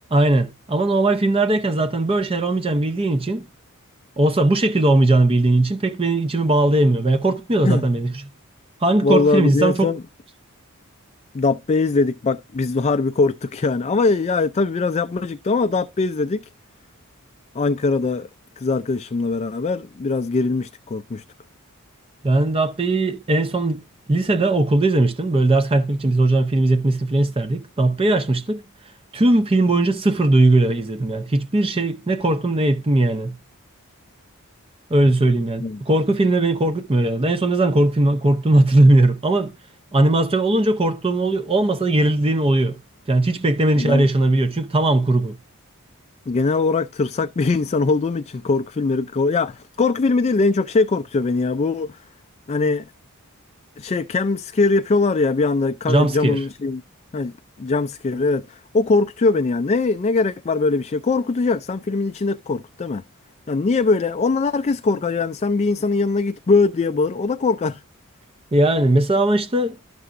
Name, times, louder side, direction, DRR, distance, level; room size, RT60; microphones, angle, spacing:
voice 1, 0.1-3.4 4.2-8.2 8.8-9.9 22.2-23.8 24.1-28.6 29.1-33.3 34.9-39.5 39.9-42.8 43.1-45.3 55.9-56.4 68.5-69.8, right 2 dB, 25° right, 0.6 m, -19 dB
voice 2, 9.0-10.0 11.3-16.5 17.5-18.3 18.6-21.2 35.6-35.8 43.8-44.1 46.3-52.1 52.5-52.9 53.8-56.8 57.1-63.0 63.5-67.8, left 3 dB, 30° left, 0.3 m, -21 dB
12.0 x 6.8 x 2.5 m
head